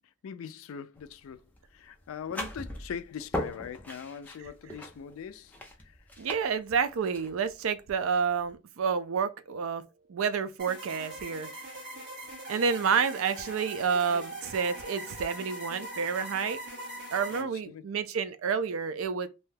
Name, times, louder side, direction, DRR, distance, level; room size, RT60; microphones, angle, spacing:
voice 1, 0.2-1.4 1.7-6.0 17.3-17.8, left 7 dB, 80° left, 0.3 m, -41 dB
sound 1, 0.9-8.5, left 1 dB, 10° left, 0.4 m, -40 dB
voice 2, 6.2-9.8 10.1-11.5 12.5-16.6 17.1-19.3, right 6 dB, 85° right, 0.4 m, -29 dB
sound 2, 10.6-17.4, right 1 dB, 50° right, 1.2 m, -41 dB
2.7 x 2.2 x 3.2 m
head